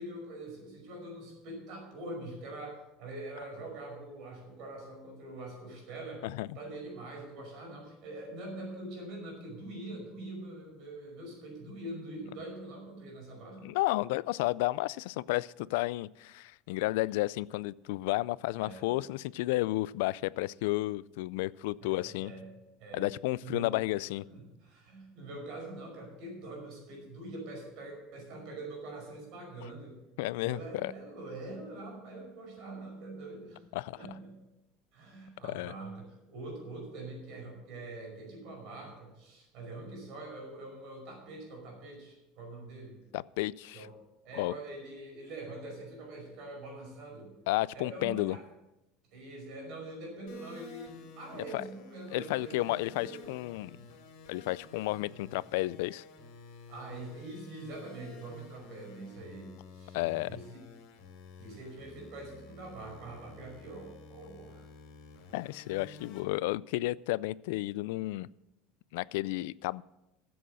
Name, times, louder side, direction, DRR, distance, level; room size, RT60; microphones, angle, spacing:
voice 1, 0.0-6.3 6.5-13.6 18.6-18.9 21.8-22.5 22.8-23.1 23.4-23.8 24.3-30.0 30.4-33.6 33.9-34.4 34.9-43.0 43.7-43.9 44.2-47.3 47.7-48.4 49.1-53.3 56.7-60.0 60.3-60.7 61.4-64.7, right 2 dB, 50° right, 1 dB, 5.3 m, -44 dB
voice 2, 13.6-22.3 22.9-24.3 30.2-30.9 33.7-34.0 35.4-35.7 43.1-43.9 44.3-44.5 47.5-48.4 51.5-51.6 52.1-53.8 54.3-56.0 59.9-60.3 65.3-68.3 68.9-69.8, left 19 dB, 80° left, 21 dB, 0.3 m, -32 dB
sound 1, 50.3-66.2, left 3 dB, 60° left, 3.1 m, -52 dB
14.0 x 7.8 x 6.4 m, 0.93 s
cardioid pair, 170°, 0 cm